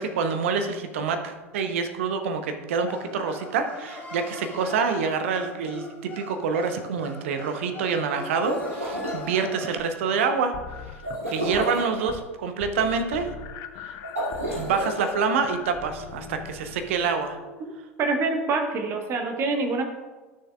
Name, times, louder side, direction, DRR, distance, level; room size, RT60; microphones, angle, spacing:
voice 1, 0.0-10.5 11.3-13.3 13.8-13.9 14.6-17.4, right 5 dB, 60° right, 7 dB, 0.7 m, -27 dB
sound 1, 2.9-9.8, left 2 dB, 25° left, 2.4 m, -41 dB
sound 2, 8.3-9.2 11.0-11.9 14.0-15.1, right 1 dB, 85° right, 2.7 m, -30 dB
sound 3, 10.5-11.7 12.0-12.3 12.6-17.4, left 7 dB, 45° left, 0.5 m, -41 dB
voice 2, 18.0-19.8, right 3 dB, 35° right, 4 dB, 1.3 m, -25 dB
11.5 x 6.6 x 2.3 m, 1.3 s
figure-of-eight pair, 80°, 8 cm